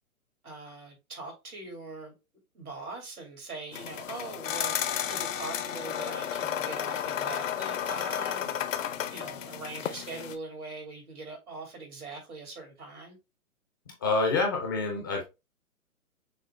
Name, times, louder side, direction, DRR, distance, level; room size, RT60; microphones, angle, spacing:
voice 1, 0.4-2.1 2.5-4.7 5.1-8.7 9.1-13.2, right 3 dB, 85° right, 2.8 m, -42 dB
sound 1, 3.7-10.4, left 9 dB, 60° left, 0.7 m, -33 dB
voice 2, 13.9-15.2, left 3 dB, 15° left, 0.4 m, -27 dB
6.4 x 2.4 x 3.2 m
hypercardioid pair, 130°, 43 cm